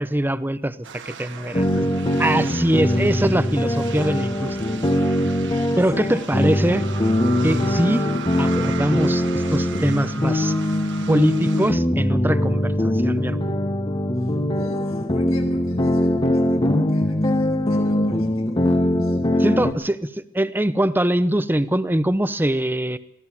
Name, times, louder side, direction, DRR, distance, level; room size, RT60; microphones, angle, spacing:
voice 1, 0.0-1.9 2.2-4.6 5.8-6.8 7.4-8.1 8.4-10.5 11.1-13.4 19.4-23.0, right 1 dB, 10° right, 13 dB, 0.8 m, -22 dB
sound 1, 0.8-11.7, right 6 dB, 60° right, 1.4 m, -37 dB
voice 2, 1.4-2.9 5.6-6.5 14.1-19.5, equal, 90° left, 1 dB, 7.3 m, -44 dB
sound 2, 1.5-19.7, left 1 dB, 25° left, 1.3 m, -22 dB
23.5 x 16.5 x 7.4 m, 0.69 s
head